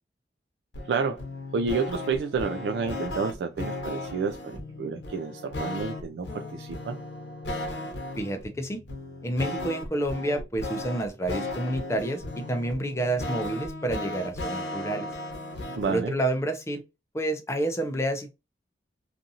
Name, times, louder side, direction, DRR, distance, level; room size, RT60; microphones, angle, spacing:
sound 1, 0.7-16.0, left 2 dB, 90° left, 0.8 m, -36 dB
voice 1, 0.9-1.2 1.5-7.0 15.7-16.1, right 5 dB, 70° right, 0.3 m, -30 dB
voice 2, 8.2-8.8 9.2-15.1 15.9-16.8 17.1-18.3, right 1 dB, 15° left, 0.5 m, -29 dB
2.7 x 2.5 x 2.7 m
head